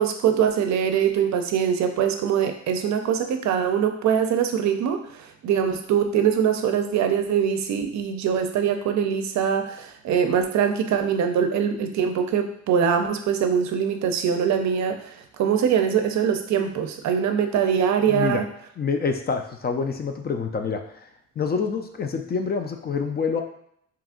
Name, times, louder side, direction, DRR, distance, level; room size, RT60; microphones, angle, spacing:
voice 1, 0.0-18.4, right 8 dB, 65° right, 6 dB, 0.5 m, -23 dB
voice 2, 18.1-18.4 18.8-21.0 21.4-23.4, left 5 dB, 35° left, 5 dB, 0.4 m, -27 dB
2.9 x 2.4 x 3.6 m, 0.70 s
cardioid pair, 90°, 30 cm